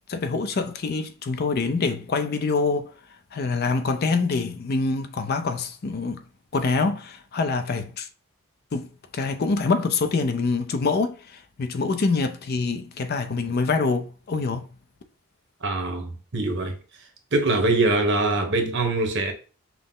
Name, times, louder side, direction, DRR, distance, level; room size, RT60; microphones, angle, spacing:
voice 1, 0.1-2.9 3.3-6.2 6.5-8.1 8.7-8.9 9.1-14.7, left 4 dB, 45° left, 0.4 m, -25 dB
voice 2, 15.6-16.8 17.3-19.3, right 2 dB, 55° right, 0.9 m, -23 dB
5.8 x 2.0 x 3.7 m
head